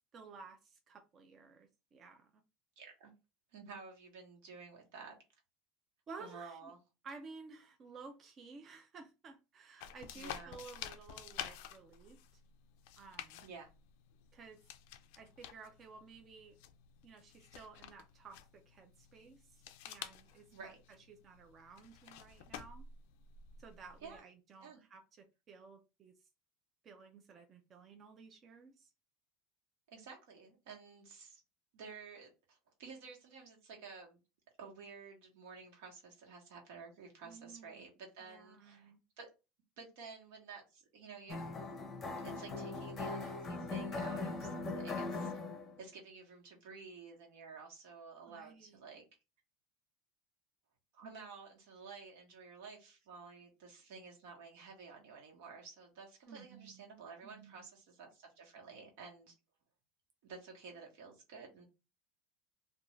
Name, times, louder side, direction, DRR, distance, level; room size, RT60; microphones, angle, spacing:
voice 1, 0.0-2.3 6.1-6.7 7.0-12.2 13.0-13.4 14.3-14.6 15.2-16.6 17.0-18.4 18.7-20.7 21.1-22.8 23.6-25.0 25.5-26.1 26.8-28.9 37.2-37.9 38.2-39.0 48.3-48.8 56.3-56.9 57.2-57.5, right 4 dB, 30° right, 4 dB, 0.4 m, -54 dB
voice 2, 2.8-3.1 3.5-5.2 6.2-6.8 10.1-10.5 13.4-13.7 20.5-20.8 24.0-24.2 24.6-24.8 29.9-31.4 31.7-34.2 34.6-38.9 39.2-39.3 39.8-41.4 42.2-45.3 45.8-49.0 50.9-59.3 60.2-61.6, right 5 dB, 80° right, 1 dB, 1.1 m, -52 dB
sound 1, 9.8-24.2, left 10 dB, 70° left, 0.3 m, -51 dB
sound 2, 41.3-45.8, left 3 dB, 20° left, 0.6 m, -40 dB
2.5 x 2.3 x 3.0 m, 0.28 s
supercardioid pair, 150°, 0 cm